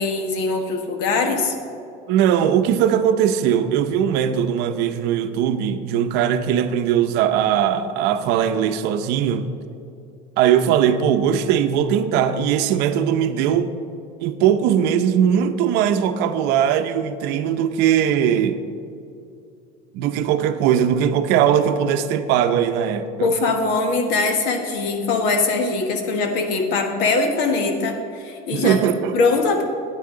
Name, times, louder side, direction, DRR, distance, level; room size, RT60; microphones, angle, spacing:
voice 1, 0.0-1.5 23.2-28.8 29.1-29.6, left 3 dB, 65° left, 4 dB, 1.5 m, -21 dB
voice 2, 2.1-9.5 10.4-13.7 14.2-18.6 19.9-23.3 28.5-29.1, right 9 dB, 65° right, 9 dB, 0.7 m, -20 dB
13.0 x 9.1 x 3.8 m, 2.6 s
cardioid pair, 145°, 19 cm